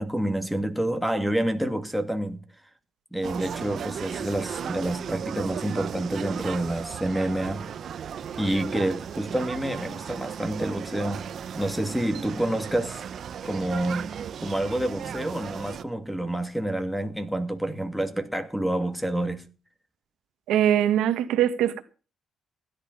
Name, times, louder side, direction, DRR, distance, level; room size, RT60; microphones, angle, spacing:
voice 1, 0.0-2.4 3.1-7.7 8.4-11.3 11.5-13.0 13.4-14.1 14.4-19.4, right 1 dB, ahead, 2.3 m, -28 dB
sound 1, 3.2-15.8, right 8 dB, 60° right, 0.9 m, -36 dB
voice 2, 20.5-21.8, right 10 dB, 90° right, 1.5 m, -22 dB
16.0 x 11.0 x 5.4 m
cardioid pair, 90°, 0 cm